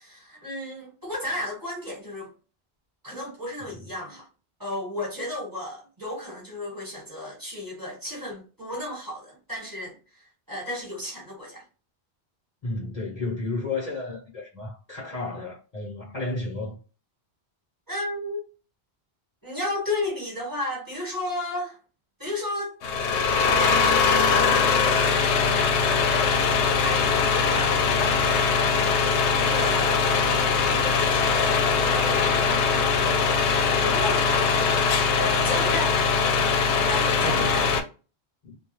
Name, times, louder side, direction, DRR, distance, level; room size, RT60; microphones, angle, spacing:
voice 1, 0.0-2.3 3.0-4.3 4.6-11.6 17.9-18.5 19.4-21.8 22.2-22.8 23.4-24.5 26.2-26.5 26.8-28.0 28.6-34.6 35.1-36.0 36.9-37.7, left 1 dB, 20° right, 1.3 m, -33 dB
voice 2, 12.6-16.8 38.4-38.6, left 3 dB, 40° left, 0.8 m, -32 dB
sound 1, 22.8-37.8, left 5 dB, 85° left, 0.8 m, -22 dB
2.3 x 2.2 x 3.0 m
omnidirectional pair, 1.1 m